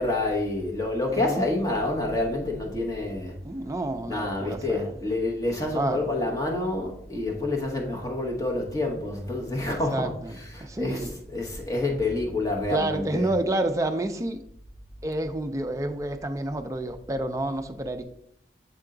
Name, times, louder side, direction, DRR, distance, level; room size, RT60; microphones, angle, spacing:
voice 1, 0.0-3.3 4.1-10.1 10.4-11.0 11.3-13.3, left 2 dB, 20° left, 1.0 m, -28 dB
voice 2, 1.1-1.5 3.4-4.9 5.7-6.1 9.9-11.1 12.7-14.4 15.0-18.0, right 1 dB, 20° right, 0.4 m, -29 dB
7.6 x 3.5 x 3.8 m
head